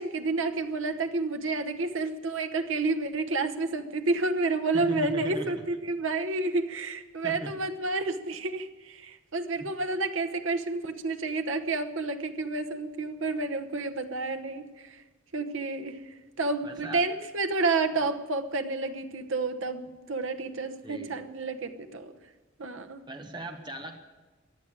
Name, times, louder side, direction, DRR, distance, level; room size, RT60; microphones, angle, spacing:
voice 1, 0.0-15.0 15.3-22.1 22.6-23.0, right 3 dB, 70° right, 9 dB, 1.1 m, -30 dB
voice 2, 4.7-5.6 7.2-7.6 9.6-9.7 16.6-17.0 20.8-21.2 23.1-24.0, right 1 dB, 20° right, 5 dB, 1.1 m, -38 dB
15.0 x 10.5 x 8.8 m, 1.2 s
head